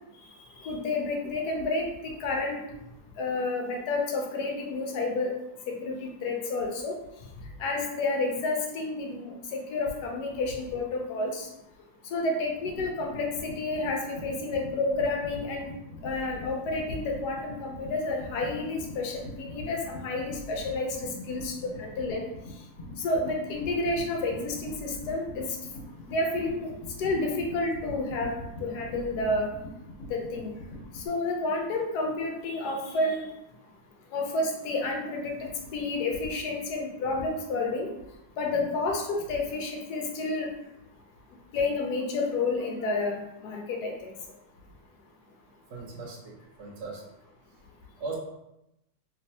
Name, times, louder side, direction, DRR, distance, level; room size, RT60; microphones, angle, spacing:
voice 1, 0.6-2.6 3.2-5.3 5.7-7.0 7.6-11.5 12.1-15.7 16.0-21.5 21.8-22.2 23.0-25.4 26.1-26.7 27.0-29.5 30.1-30.5 30.9-33.2 34.1-37.9 38.4-40.5 41.5-44.1, left 2 dB, 75° left, 1 dB, 1.1 m, -30 dB
sound 1, 12.5-31.1, left 1 dB, 50° left, 1.4 m, -42 dB
voice 2, 45.7-47.0 48.0-48.2, right 4 dB, 75° right, -2 dB, 1.3 m, -39 dB
3.1 x 3.1 x 2.7 m, 0.87 s
omnidirectional pair, 1.8 m